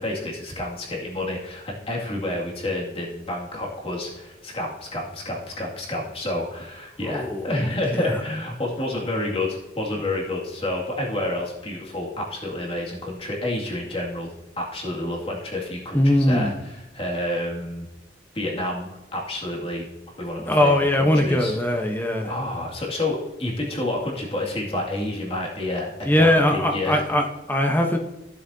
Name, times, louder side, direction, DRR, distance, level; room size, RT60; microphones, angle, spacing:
voice 1, 0.0-14.3 14.6-17.9 18.3-19.9 20.2-27.0, left 1 dB, 30° left, -2 dB, 2.2 m, -29 dB
voice 2, 7.0-7.5 7.9-8.0 15.9-16.5 20.5-22.3 26.0-28.0, left 1 dB, 10° left, 2 dB, 0.9 m, -20 dB
15.5 x 7.2 x 2.7 m, 0.97 s
head